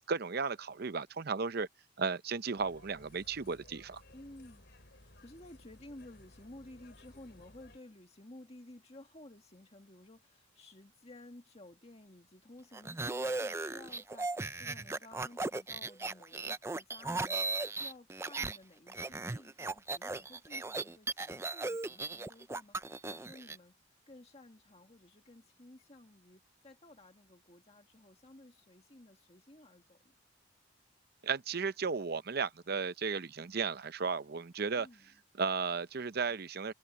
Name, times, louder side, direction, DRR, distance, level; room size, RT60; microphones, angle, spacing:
voice 1, 0.1-1.7 2.0-4.0 31.2-34.9 35.4-36.7, right 5 dB, 50° right, 0.6 m, -34 dB
sound 1, 2.6-7.8, left 1 dB, 55° left, 3.8 m, -58 dB
voice 2, 4.1-4.6 5.0-30.1 34.8-35.2, left 1 dB, 30° left, 1.8 m, -55 dB
sound 2, 12.7-18.6 18.9-23.6, right 3 dB, 15° right, 0.4 m, -37 dB
head